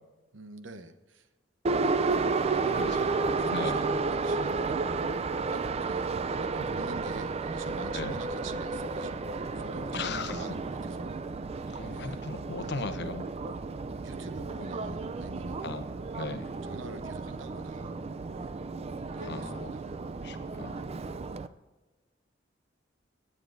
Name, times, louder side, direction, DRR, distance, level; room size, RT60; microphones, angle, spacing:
voice 1, 0.3-1.3 2.4-5.1 5.5-11.2 11.5-12.2 12.6-12.8 13.9-15.6 15.9-16.1 16.6-17.9 19.1-19.9, right 2 dB, 75° right, 8 dB, 0.9 m, -44 dB
Subway metro underground, 1.6-21.5, right 4 dB, 35° right, 0.4 m, -32 dB
voice 2, 9.9-10.5 11.7-13.2 15.6-15.8 16.1-16.5 19.2-19.7 20.2-20.9, left 3 dB, 60° left, 8 dB, 0.9 m, -37 dB
17.5 x 9.7 x 2.6 m, 1.2 s
head